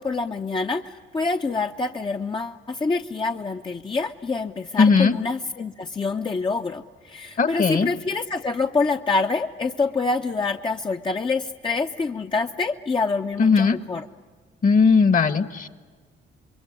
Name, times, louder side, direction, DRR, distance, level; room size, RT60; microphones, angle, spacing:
voice 1, 0.0-14.1, left 4 dB, 25° left, 4 dB, 0.8 m, -26 dB
voice 2, 4.8-5.1 7.4-7.9 13.4-13.8 14.6-15.7, left 5 dB, 40° left, 14 dB, 1.5 m, -18 dB
27.0 x 22.5 x 9.8 m, 1.5 s
cardioid pair, 90°, 20 cm